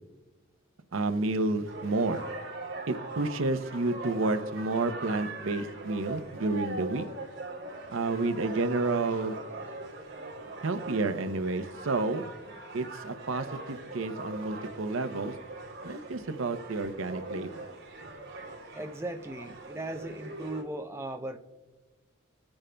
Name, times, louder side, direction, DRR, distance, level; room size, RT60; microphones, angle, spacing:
voice 1, 0.9-2.2 2.9-7.0 7.9-9.4 10.6-12.2 12.7-15.4 15.8-17.6, right 3 dB, 75° right, 10 dB, 0.7 m, -30 dB
sound 1, 1.7-20.6, right 2 dB, 55° right, 2.6 m, -41 dB
voice 2, 18.7-21.4, right 1 dB, 15° right, 5 dB, 0.5 m, -37 dB
19.0 x 8.8 x 2.2 m, 1.2 s
head